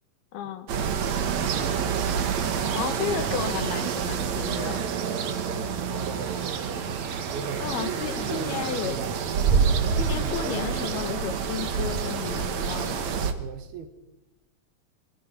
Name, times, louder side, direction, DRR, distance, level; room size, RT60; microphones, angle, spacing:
voice 1, 0.3-0.7 2.7-4.8 7.6-9.0 10.0-13.1, left 8 dB, 75° left, 9 dB, 3.4 m, -33 dB
sound 1, 0.7-13.3, right 6 dB, 55° right, 2.2 m, -27 dB
voice 2, 1.5-1.9 6.0-7.0 7.3-9.2 13.4-13.9, right 7 dB, 75° right, 8 dB, 3.5 m, -38 dB
sound 2, 2.1-11.6, right 3 dB, 35° right, 3.0 m, -43 dB
27.0 x 22.0 x 5.5 m, 1.0 s
omnidirectional pair, 4.5 m